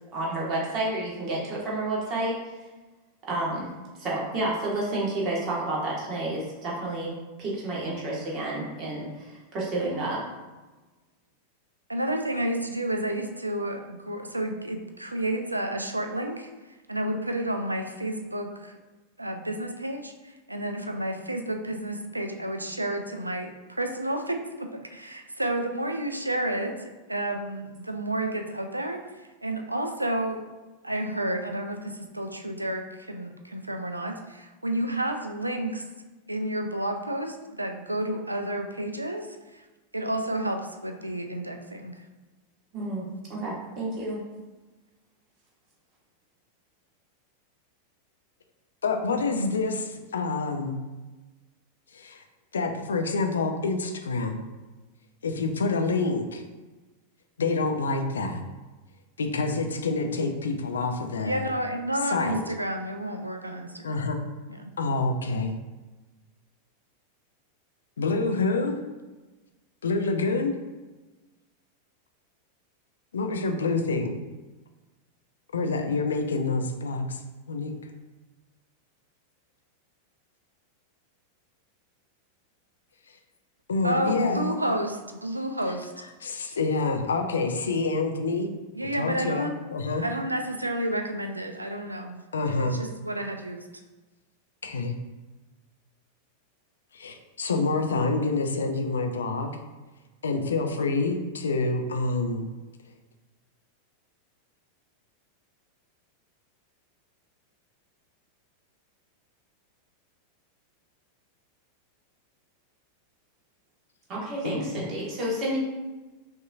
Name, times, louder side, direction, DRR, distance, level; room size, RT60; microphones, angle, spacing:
voice 1, 0.1-2.4 3.3-10.2 42.7-44.2 114.1-115.6, right 2 dB, 35° right, -5 dB, 1.4 m, -30 dB
voice 2, 11.9-16.5 16.9-18.7 19.2-30.4 30.8-35.8 36.3-39.3 39.5-39.6 39.9-41.9 61.2-64.1 64.5-64.7 83.8-85.9 88.8-89.6 90.0-92.2 92.6-93.6, right 1 dB, 85° right, 5 dB, 0.4 m, -31 dB
voice 3, 48.8-50.8 51.9-52.2 52.5-54.4 55.2-56.4 57.4-58.4 59.2-61.5 62.0-62.4 63.8-64.2 64.8-65.5 68.0-68.8 69.8-70.5 73.1-74.2 75.5-77.2 77.5-77.7 83.7-84.5 86.2-88.5 89.0-90.0 92.3-92.8 94.6-94.9 96.9-99.6 100.2-102.5 114.4-114.8, left 3 dB, 70° left, 5 dB, 0.4 m, -27 dB
5.5 x 2.7 x 2.4 m, 1.2 s
figure-of-eight pair, 90°, 0 cm